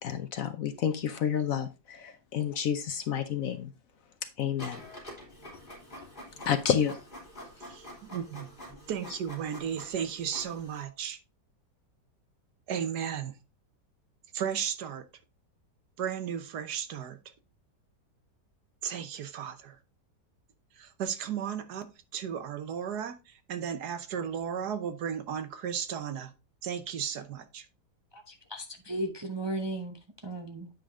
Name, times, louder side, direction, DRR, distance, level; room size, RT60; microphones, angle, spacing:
voice 1, 0.0-3.7 4.4-4.8 6.5-6.9, left 8 dB, 60° left, 1.0 m, -29 dB
Printer, 4.6-10.8, equal, 30° left, 3.3 m, -47 dB
voice 2, 7.7-11.2 12.7-13.4 14.3-15.1 16.0-17.2 18.8-19.8 20.8-26.3 26.6-27.7, right 8 dB, 70° right, 1.4 m, -35 dB
voice 3, 28.1-30.7, right 1 dB, 25° right, 0.5 m, -36 dB
8.9 x 5.3 x 3.6 m
omnidirectional pair, 1.8 m